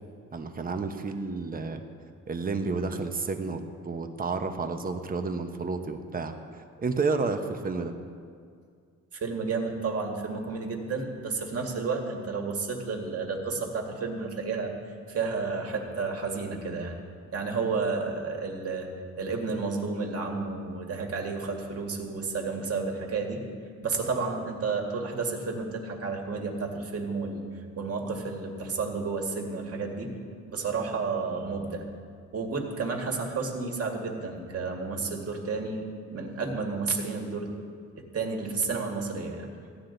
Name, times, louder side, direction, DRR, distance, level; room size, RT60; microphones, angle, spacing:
voice 1, 0.3-1.8 2.3-7.9, right 4 dB, 30° right, 6 dB, 1.0 m, -31 dB
voice 2, 9.1-14.7 15.1-17.0 17.3-18.9 19.2-23.4 23.8-27.4 27.8-30.1 30.5-31.8 32.3-37.5 38.0-39.5, right 4 dB, 50° right, 1 dB, 2.0 m, -31 dB
15.5 x 9.7 x 4.0 m, 2.2 s
cardioid pair, 90°, 30 cm